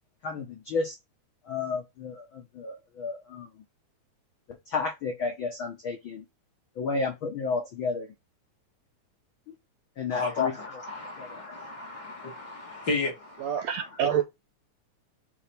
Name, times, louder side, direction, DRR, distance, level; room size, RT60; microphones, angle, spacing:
voice 1, 0.2-0.9 1.4-3.5 4.7-6.3 6.8-8.1 9.5-9.6 10.0-10.5 11.2-11.4, left 4 dB, 60° left, 1.3 m, -32 dB
voice 2, 10.1-13.9, left 4 dB, 40° left, 2.4 m, -33 dB
voice 3, 13.4-14.2, right 9 dB, 75° right, 1.7 m, -27 dB
6.8 x 3.2 x 4.4 m
omnidirectional pair, 3.6 m